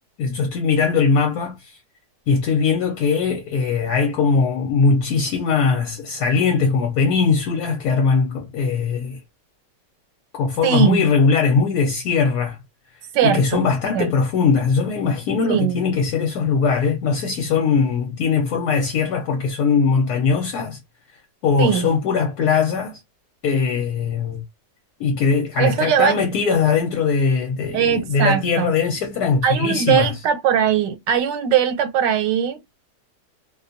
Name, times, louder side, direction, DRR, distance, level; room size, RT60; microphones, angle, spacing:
voice 1, 0.2-1.8 2.3-9.2 10.3-12.6 13.2-20.8 21.4-23.0 23.4-24.4 25.0-30.1, left 5 dB, 70° left, 1.1 m, -20 dB
voice 2, 10.6-11.0 13.1-13.7 13.9-14.1 15.5-15.8 21.6-21.9 25.6-26.2 27.7-28.7 29.4-32.6, right 8 dB, 80° right, 1.3 m, -20 dB
2.7 x 2.2 x 2.5 m
omnidirectional pair, 1.9 m